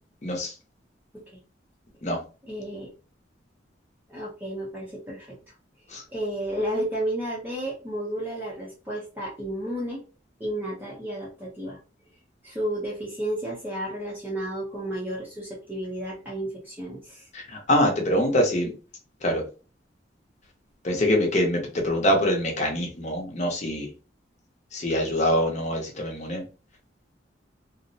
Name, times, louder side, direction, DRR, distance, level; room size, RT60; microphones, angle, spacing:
voice 1, 0.2-0.5 2.0-2.2 5.9-6.0 17.3-18.7 19.2-19.4 20.8-23.9 24.7-26.4, equal, 40° left, 2 dB, 0.7 m, -24 dB
voice 2, 2.4-2.9 4.1-5.4 6.1-10.0 10.4-11.8 12.4-17.3, right 1 dB, 10° right, -5 dB, 0.6 m, -32 dB
2.4 x 2.0 x 2.6 m, 0.34 s
head